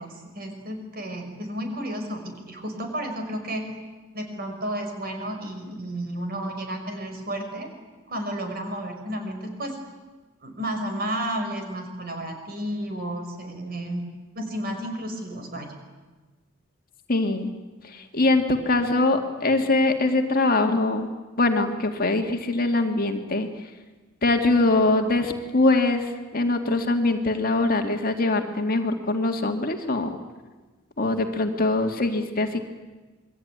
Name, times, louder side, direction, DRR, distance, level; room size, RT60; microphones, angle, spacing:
voice 1, 0.0-3.6 4.1-7.7 8.1-9.8 10.4-14.0 14.4-15.7, right 1 dB, 45° right, 4 dB, 5.4 m, -32 dB
voice 2, 17.1-17.5 17.8-21.1 21.4-23.5 24.2-30.2 31.0-32.6, left 2 dB, 40° left, 5 dB, 2.0 m, -23 dB
27.5 x 22.0 x 9.5 m, 1.3 s
head